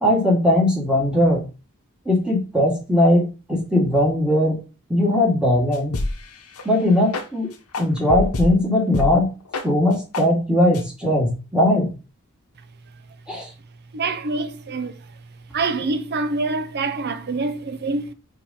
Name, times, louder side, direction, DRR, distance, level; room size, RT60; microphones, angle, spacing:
voice 1, 0.0-1.4 2.1-4.6 4.9-5.9 6.6-7.5 7.8-9.3 9.6-11.9 13.3-13.5, left 1 dB, 5° right, 2.1 m, -19 dB
sound 1, 5.7-6.2 6.6-6.7 7.1-7.3 7.7-8.5 8.9-9.1 9.5-9.7 10.1-10.2 10.7-10.8, left 2 dB, 85° left, 1.0 m, -25 dB
voice 2, 13.9-15.2 15.5-18.1, right 3 dB, 45° right, 0.6 m, -26 dB
4.8 x 3.7 x 5.3 m
head